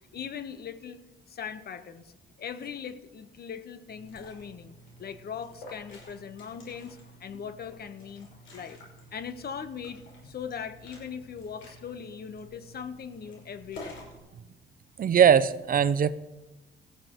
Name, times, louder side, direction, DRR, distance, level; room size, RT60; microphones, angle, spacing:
voice 1, 0.1-1.0 1.3-8.8 9.1-14.1, left 7 dB, 50° left, 10 dB, 1.1 m, -40 dB
Liquid, 3.9-14.2, left 1 dB, 80° left, 5.6 m, -50 dB
voice 2, 15.0-16.1, right 8 dB, 45° right, 16 dB, 0.6 m, -20 dB
18.0 x 14.0 x 3.1 m, 1.1 s
cardioid pair, 90°, 20 cm